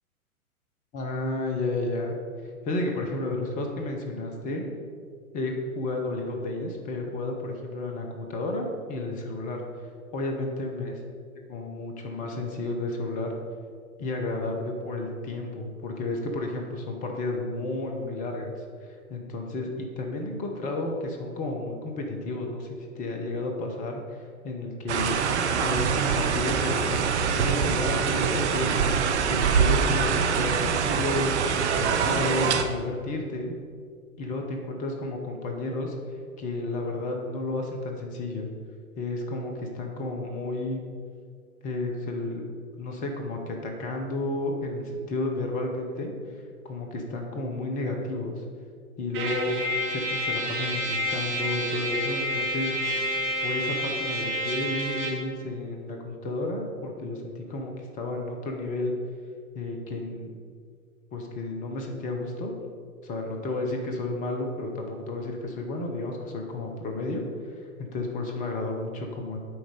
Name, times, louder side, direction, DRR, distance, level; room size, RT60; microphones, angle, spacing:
voice 1, 0.9-2.2 2.4-4.6 5.3-9.6 10.1-10.9 11.5-13.3 14.0-25.2 25.6-27.0 27.3-31.3 31.7-33.5 34.2-35.9 36.4-38.5 39.0-40.8 41.6-42.4 42.8-46.4 46.6-48.4 49.0-49.6 49.9-52.8 53.4-58.9 59.5-60.3 61.1-62.5 63.0-69.4, left 2 dB, 20° left, 2 dB, 0.8 m, -32 dB
sound 1, 24.9-32.6, right 6 dB, 50° right, 0.8 m, -24 dB
Trumpet, 49.1-55.3, equal, 25° right, 1.7 m, -29 dB
8.5 x 5.1 x 6.7 m, 2.1 s
figure-of-eight pair, 110°, 44 cm